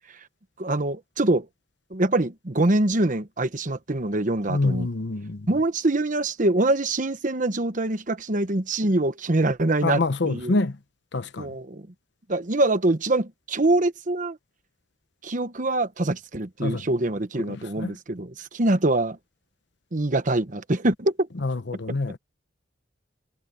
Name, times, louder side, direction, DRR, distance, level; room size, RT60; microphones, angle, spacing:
voice 1, 0.6-1.5 1.9-4.9 5.5-10.5 11.4-11.9 12.3-14.4 15.2-19.2 19.9-21.1, right 2 dB, 45° right, 1.1 m, -24 dB
voice 2, 4.5-5.5 9.8-10.8 11.1-11.5 16.6-16.8 17.5-17.9 21.4-22.2, left 3 dB, 65° left, 0.9 m, -26 dB
head